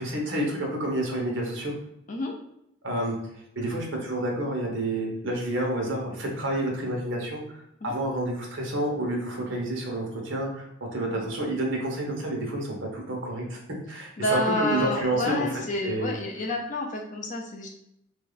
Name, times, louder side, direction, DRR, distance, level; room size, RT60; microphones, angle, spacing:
voice 1, 0.0-1.7 2.8-3.1 3.5-13.6 13.9-15.5 15.8-16.1, right 1 dB, 65° right, 0 dB, 1.0 m, -29 dB
voice 2, 14.2-17.7, left 1 dB, 35° left, 0 dB, 0.5 m, -29 dB
3.1 x 2.7 x 3.9 m, 0.79 s
head